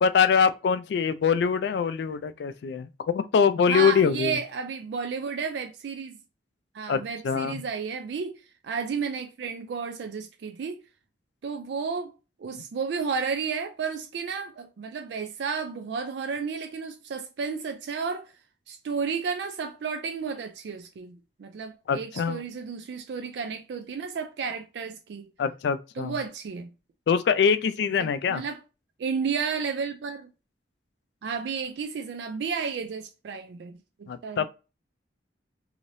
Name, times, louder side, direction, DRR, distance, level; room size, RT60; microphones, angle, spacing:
voice 1, 0.0-4.4 6.9-7.6 21.9-22.4 25.4-26.1 27.1-28.4 34.1-34.5, left 6 dB, 65° left, 0.3 m, -24 dB
voice 2, 3.7-6.2 6.7-10.8 11.4-12.1 12.4-18.3 18.7-25.3 26.0-26.7 28.0-28.6 29.0-30.3 31.2-34.5, right 5 dB, 70° right, 0.3 m, -32 dB
3.1 x 2.8 x 2.6 m
head